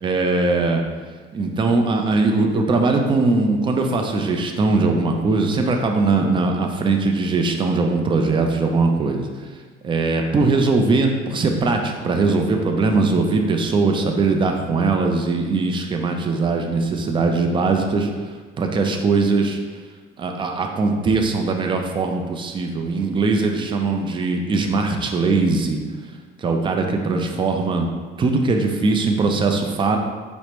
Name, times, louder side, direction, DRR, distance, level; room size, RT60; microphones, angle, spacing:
voice 1, 0.0-0.8 1.3-9.3 9.8-18.1 18.6-19.6 20.2-25.8 26.4-27.9 28.2-30.0, right 3 dB, 25° right, 3 dB, 0.4 m, -20 dB
4.7 x 2.1 x 2.9 m, 1.4 s
cardioid pair, 105°, 20 cm